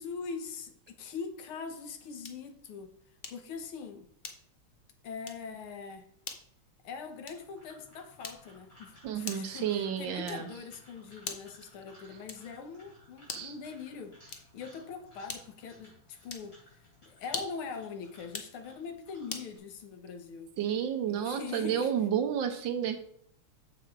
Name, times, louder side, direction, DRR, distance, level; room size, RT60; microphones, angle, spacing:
voice 1, 0.0-2.9 3.3-4.1 5.0-6.1 6.8-20.5 21.1-21.9, left 5 dB, 80° left, 6 dB, 1.9 m, -42 dB
sound 1, 2.2-2.5 3.2-3.5 4.2-4.7 5.2-5.5 6.2-6.5 7.2-7.6 8.2-8.6 9.2-9.6 10.2-10.6 11.2-11.6 12.2-12.6 13.2-13.6 14.2-14.6 15.3-15.7 16.2-16.5 17.2-17.7 18.2-18.6 19.3-19.5, left 4 dB, 60° left, 0.6 m, -42 dB
sound 2, 7.2-19.6, left 1 dB, 30° left, 3.9 m, -59 dB
voice 2, 9.0-10.5 13.3-13.5 20.6-23.0, right 9 dB, 65° right, 7 dB, 1.5 m, -31 dB
7.0 x 6.2 x 4.7 m, 0.68 s
omnidirectional pair, 2.3 m